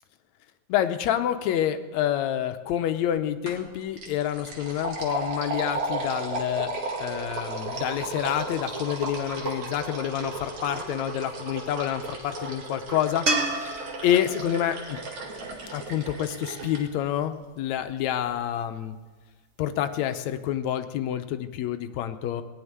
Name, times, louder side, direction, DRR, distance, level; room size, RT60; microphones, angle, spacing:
voice 1, 0.7-6.7 7.0-13.3 14.0-15.0 15.7-19.0 19.6-22.4, left 10 dB, 75° left, 9 dB, 2.0 m, -28 dB
sound 1, 3.5-3.7 4.0-16.8, right 2 dB, 70° right, 3.5 m, -34 dB
sound 2, 13.3-16.5 19.8-19.9, right 2 dB, 50° right, 0.7 m, -31 dB
18.5 x 7.2 x 9.7 m, 1.3 s
omnidirectional pair, 3.4 m